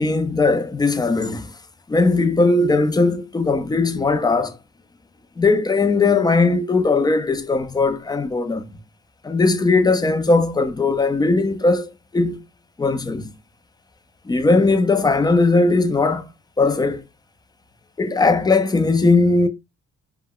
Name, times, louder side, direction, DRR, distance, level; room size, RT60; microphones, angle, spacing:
voice 1, 0.0-1.5 1.9-4.6 5.4-8.7 9.2-12.4 12.8-13.3 14.3-16.3 16.6-17.0 18.0-19.5, left 3 dB, 15° left, 0.4 m, -18 dB
2.2 x 2.1 x 3.6 m
cardioid pair, 90°, 30 cm